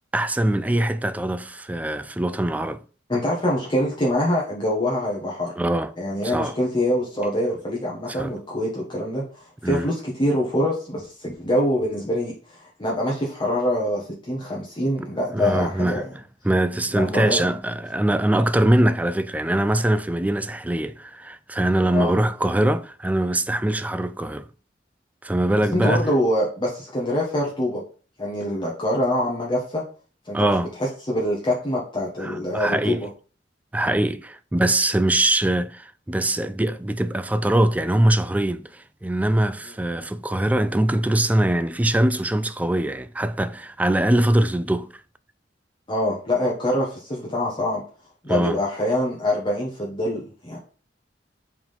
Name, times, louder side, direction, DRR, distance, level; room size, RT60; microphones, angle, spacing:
voice 1, 0.1-2.8 5.6-5.9 6.2-6.5 8.1-8.3 9.6-9.9 15.3-16.0 16.4-24.4 25.2-26.0 30.3-30.7 32.2-33.1 33.7-44.9 48.3-48.6, right 1 dB, 10° right, 0.3 m, -22 dB
voice 2, 3.1-5.5 6.0-16.0 16.9-17.4 21.9-22.1 25.7-27.8 28.2-29.8 30.2-30.5 30.8-33.1 45.9-47.8 48.2-50.6, left 1 dB, 25° left, 1.4 m, -25 dB
4.7 x 3.9 x 5.1 m
head